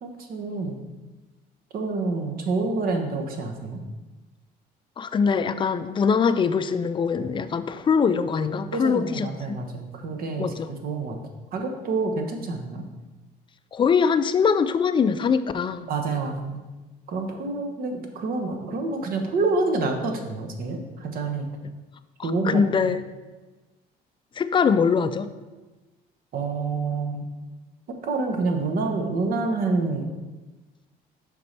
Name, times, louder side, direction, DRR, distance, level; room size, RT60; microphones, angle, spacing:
voice 1, 0.0-0.8 1.7-3.8 8.7-11.2 11.5-12.8 15.9-16.6 17.1-21.5 22.2-22.9 26.3-27.3 28.0-30.1, right 3 dB, 60° right, 4 dB, 1.0 m, -27 dB
voice 2, 5.0-9.6 10.4-10.7 13.7-15.9 22.2-23.0 24.4-25.3, left 6 dB, 30° left, 11 dB, 0.3 m, -23 dB
6.8 x 5.3 x 3.3 m, 1.2 s
cardioid pair, 110°, 17 cm